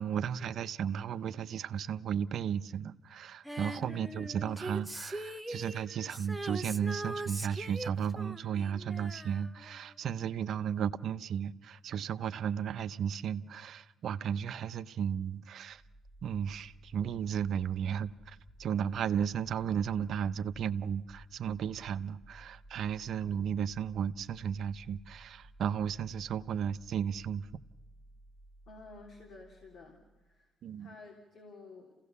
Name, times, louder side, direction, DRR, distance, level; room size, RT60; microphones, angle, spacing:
voice 1, 0.0-15.8 16.2-27.5 30.6-30.9, right 8 dB, 70° right, 0.7 m, -34 dB
Female singing, 3.5-10.1 10.4-10.5, right 1 dB, 5° right, 0.9 m, -41 dB
sound 1, 15.7-30.5, right 1 dB, 20° left, 1.8 m, -57 dB
voice 2, 28.7-30.0 30.2-30.5 30.8-31.9, left 3 dB, 65° left, 3.3 m, -52 dB
27.5 x 16.5 x 6.9 m
cardioid pair, 90°, 0 cm